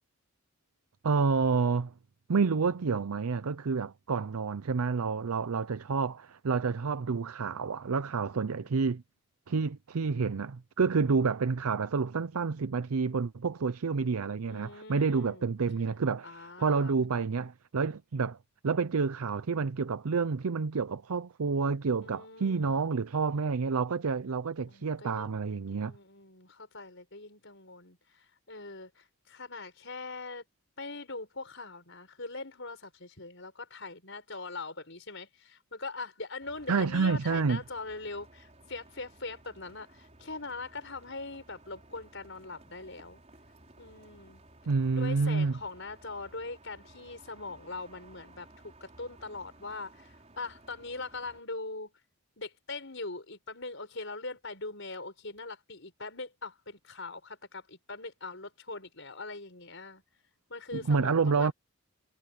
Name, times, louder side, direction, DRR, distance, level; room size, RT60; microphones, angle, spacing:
voice 1, 1.0-1.9 2.3-9.0 9.5-18.4 18.6-25.9 36.7-37.6 44.7-45.6 60.7-61.5, right 5 dB, 80° right, 0.6 m, -29 dB
voice 2, 14.5-15.5 16.2-16.9 22.0-22.9 24.7-30.4 30.8-43.2 43.8-44.4 45.0-51.9 52.4-60.0 60.5-61.5, left 3 dB, 55° left, 6.2 m, -42 dB
sound 1, 36.4-51.4, right 2 dB, 30° right, 4.8 m, -57 dB
head